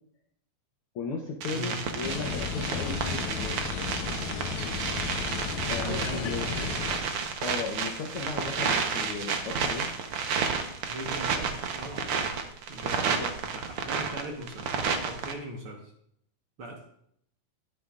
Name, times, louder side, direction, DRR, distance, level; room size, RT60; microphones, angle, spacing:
voice 1, 0.9-3.6 5.6-6.5 7.4-9.9 13.2-13.3, left 4 dB, 90° left, 2 dB, 1.2 m, -36 dB
sound 1, 1.4-15.3, right 6 dB, 75° right, 1.3 m, -31 dB
sound 2, 2.0-7.0, left 7 dB, 75° left, 1.9 m, -34 dB
voice 2, 5.8-7.0 10.9-12.2 12.7-13.2 13.5-14.8 15.0-15.9 16.6-16.9, right 1 dB, 55° right, 0 dB, 1.6 m, -40 dB
13.0 x 10.5 x 2.4 m, 0.72 s
omnidirectional pair, 3.7 m